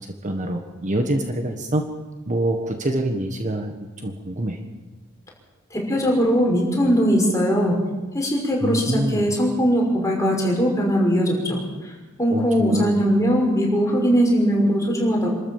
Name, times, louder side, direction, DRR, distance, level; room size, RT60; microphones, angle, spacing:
voice 1, 0.2-1.9 2.3-3.7 4.0-4.6 8.6-9.3 12.3-12.9, right 1 dB, 35° right, 5 dB, 1.5 m, -25 dB
voice 2, 5.7-7.8 8.1-11.6 12.2-15.3, equal, 15° left, -1 dB, 5.8 m, -20 dB
27.5 x 13.5 x 7.3 m, 1.2 s
head